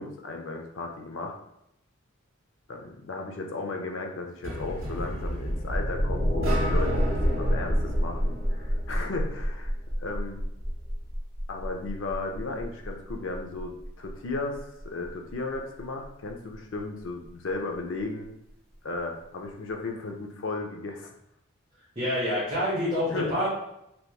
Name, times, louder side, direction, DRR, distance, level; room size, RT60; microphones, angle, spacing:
voice 1, 0.0-1.3 2.7-9.7 10.0-10.4 11.5-18.3 18.8-21.1 23.1-23.5, left 3 dB, 65° left, 3 dB, 0.5 m, -35 dB
sound 1, 4.4-9.4, equal, 75° right, 1.5 m, -32 dB
sound 2, 4.9-18.2, equal, 5° left, 0.7 m, -30 dB
voice 2, 22.0-23.5, equal, 25° right, -9 dB, 0.9 m, -27 dB
3.3 x 2.9 x 2.3 m, 0.80 s
head